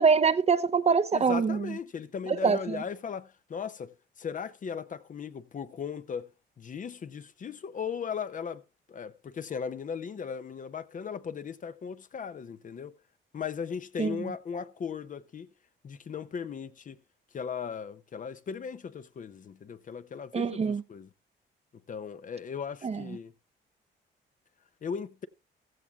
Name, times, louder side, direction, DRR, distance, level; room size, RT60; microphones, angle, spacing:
voice 1, 0.0-1.7 2.4-2.8 14.0-14.3 20.3-20.8 22.8-23.0, right 5 dB, 30° right, 0.7 m, -25 dB
voice 2, 1.1-3.9 4.2-6.3 6.6-8.6 8.9-12.9 13.3-15.5 15.8-17.0 17.3-21.1 21.9-23.3 24.8-25.3, left 6 dB, 40° left, 0.7 m, -37 dB
15.5 x 13.5 x 2.4 m
cardioid pair, 90°, 20 cm